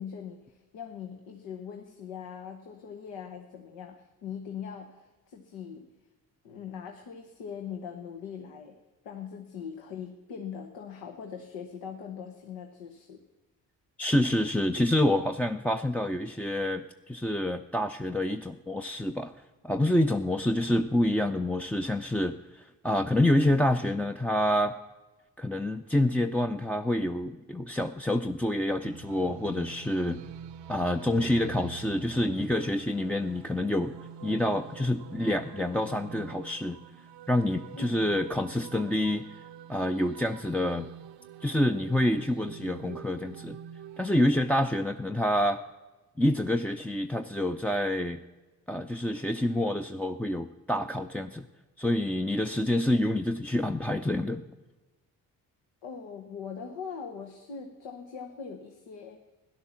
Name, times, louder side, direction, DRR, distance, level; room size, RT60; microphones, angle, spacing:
voice 1, 0.0-5.8 6.4-8.7 9.0-13.2 37.8-38.0 55.8-59.2, left 7 dB, 75° left, 4 dB, 1.2 m, -41 dB
voice 2, 14.0-19.3 19.6-24.8 25.4-30.2 30.7-33.9 34.2-36.8 37.3-39.3 39.7-40.9 41.4-43.6 44.0-45.6 46.2-48.2 48.7-51.5 51.8-54.4, left 1 dB, 5° left, 4 dB, 0.5 m, -27 dB
sound 1, 28.8-44.1, right 8 dB, 65° right, 0.8 m, -46 dB
12.5 x 10.5 x 7.3 m, 1.2 s
hypercardioid pair, 45°, 45 cm